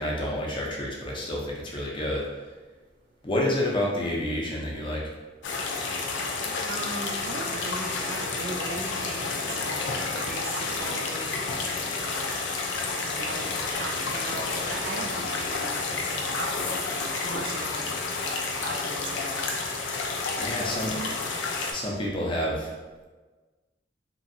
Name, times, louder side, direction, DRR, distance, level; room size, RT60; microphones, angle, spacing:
voice 1, 0.0-2.3 3.2-5.0 20.4-20.9 21.7-22.7, left 1 dB, 25° left, -3 dB, 0.5 m, -29 dB
sound 1, 5.4-21.7, left 4 dB, 75° left, 0.4 m, -30 dB
voice 2, 6.7-11.4 13.0-17.9 18.5-19.6 20.4-21.3, right 3 dB, 50° right, 3 dB, 0.3 m, -38 dB
2.8 x 2.5 x 2.5 m, 1.3 s
head